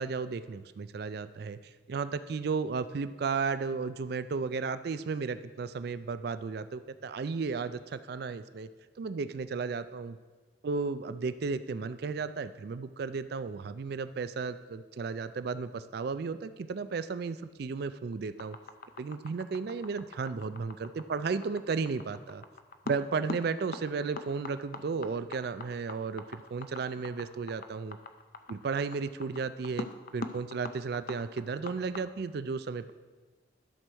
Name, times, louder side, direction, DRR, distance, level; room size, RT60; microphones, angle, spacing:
voice 1, 0.0-1.6 1.9-8.7 9.0-10.2 10.6-18.6 19.0-22.4 22.9-28.0 28.5-29.9 30.1-32.9, right 4 dB, 55° right, 13 dB, 0.4 m, -34 dB
sound 1, 18.4-32.0, left 3 dB, 50° left, 0.6 m, -41 dB
11.5 x 4.5 x 6.2 m, 1.3 s
head